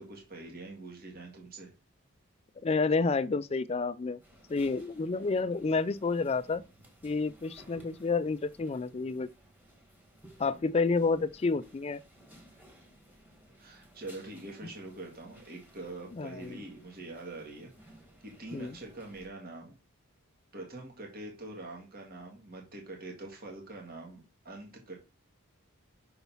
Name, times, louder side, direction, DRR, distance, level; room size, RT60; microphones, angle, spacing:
voice 1, 0.0-1.7 13.6-17.7 18.2-19.8 20.5-24.9, right 2 dB, 45° right, 1.7 m, -44 dB
voice 2, 2.6-4.2 4.5-6.6 7.0-9.3 10.4-12.0 16.1-16.6 18.5-18.8, left 4 dB, 30° left, 0.3 m, -29 dB
sound 1, 4.2-19.3, right 1 dB, 10° right, 1.6 m, -58 dB
5.8 x 4.1 x 5.5 m
head